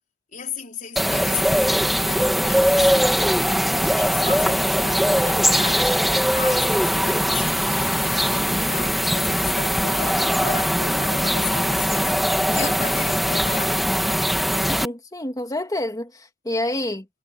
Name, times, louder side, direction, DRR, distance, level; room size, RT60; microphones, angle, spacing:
voice 1, 0.3-3.1 3.5-12.2 12.5-13.9, left 6 dB, 40° left, 4.4 m, -35 dB
sound 1, 1.0-14.9, equal, ahead, 2.5 m, -21 dB
voice 2, 12.5-13.1 14.6-17.1, left 1 dB, 20° left, 2.0 m, -29 dB
head